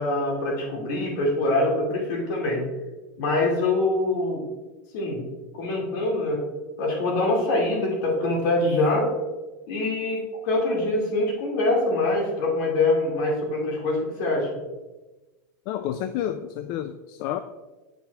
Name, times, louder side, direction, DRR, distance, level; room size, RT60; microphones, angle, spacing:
voice 1, 0.0-2.6 3.2-4.4 4.9-5.2 5.5-6.4 6.8-9.1 9.7-14.5, left 2 dB, 65° left, -1 dB, 2.3 m, -24 dB
voice 2, 15.7-17.4, left 10 dB, 50° left, 10 dB, 0.4 m, -30 dB
8.5 x 6.0 x 2.3 m, 1.1 s
supercardioid pair, 125°, 11 cm